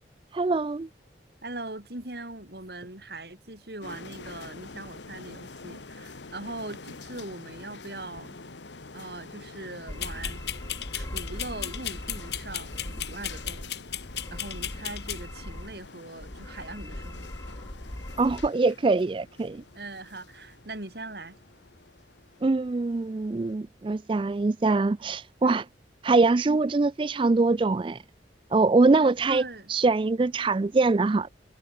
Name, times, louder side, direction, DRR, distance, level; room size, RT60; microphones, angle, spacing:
voice 1, 0.3-0.9 18.2-19.6 22.4-25.6 26.0-28.0 28.5-29.4 29.7-31.3, right 3 dB, 30° right, 0.4 m, -23 dB
voice 2, 1.4-8.4 8.9-10.4 10.9-13.8 14.3-17.3 19.7-21.4 25.4-25.6 29.3-29.7, right 2 dB, 60° right, 4.5 m, -41 dB
sound 1, 3.8-23.5, left 3 dB, 85° left, 1.4 m, -47 dB
sound 2, 9.9-13.7 14.0-15.9 16.2-18.5, left 1 dB, 15° left, 1.0 m, -40 dB
sound 3, 10.0-15.2, left 11 dB, 70° left, 2.4 m, -36 dB
head